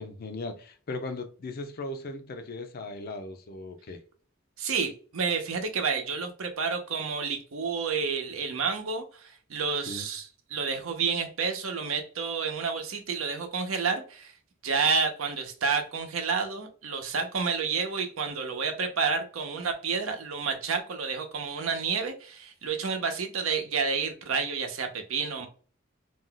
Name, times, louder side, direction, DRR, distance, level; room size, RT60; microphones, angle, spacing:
voice 1, 0.0-4.0 9.9-10.1, left 2 dB, 45° left, 0.4 m, -38 dB
voice 2, 4.6-10.3 10.5-14.3 14.6-25.5, right 5 dB, 90° right, 0.7 m, -30 dB
2.6 x 2.2 x 3.7 m
head